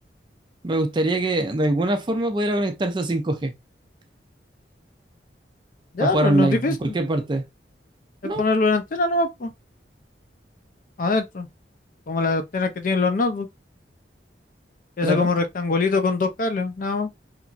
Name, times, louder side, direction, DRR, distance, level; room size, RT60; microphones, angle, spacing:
voice 1, 0.6-3.5 6.0-7.4 8.2-8.4 15.0-15.3, right 2 dB, 25° right, 0.4 m, -23 dB
voice 2, 5.9-6.9 8.2-9.5 11.0-11.5 12.1-13.5 15.0-17.1, left 3 dB, 45° left, 0.4 m, -23 dB
2.9 x 2.5 x 2.3 m
head